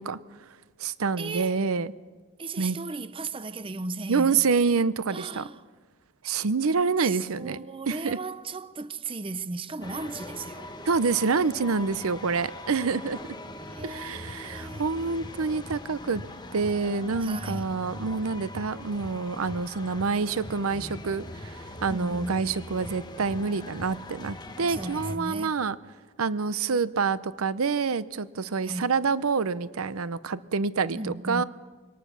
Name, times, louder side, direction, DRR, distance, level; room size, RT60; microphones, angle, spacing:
voice 1, 0.0-1.9 2.6-2.8 4.1-5.4 6.2-7.6 7.9-8.2 10.8-13.4 13.8-16.2 16.5-25.7 26.2-31.4, right 4 dB, 90° right, 0.6 m, -27 dB
voice 2, 1.2-1.7 2.4-4.4 5.1-5.6 7.0-10.7 13.6-14.9 17.2-17.6 21.9-22.6 24.7-25.6 28.6-28.9 31.0-31.4, right 3 dB, 25° right, 0.6 m, -36 dB
sound 1, 9.8-25.2, left 1 dB, 20° left, 1.2 m, -41 dB
24.0 x 18.5 x 6.9 m
head